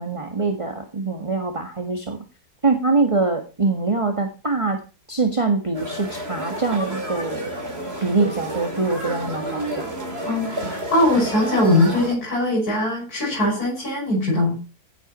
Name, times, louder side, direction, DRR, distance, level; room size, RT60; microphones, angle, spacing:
voice 1, 0.0-2.2 2.6-4.8 5.1-7.5 8.0-9.9, right 3 dB, 20° right, 4 dB, 1.7 m, -23 dB
sound 1, 5.7-12.2, right 1 dB, 40° right, 3.5 m, -30 dB
voice 2, 10.3-14.5, left 1 dB, 80° left, -4 dB, 7.0 m, -21 dB
16.0 x 8.1 x 4.3 m, 0.32 s
omnidirectional pair, 1.6 m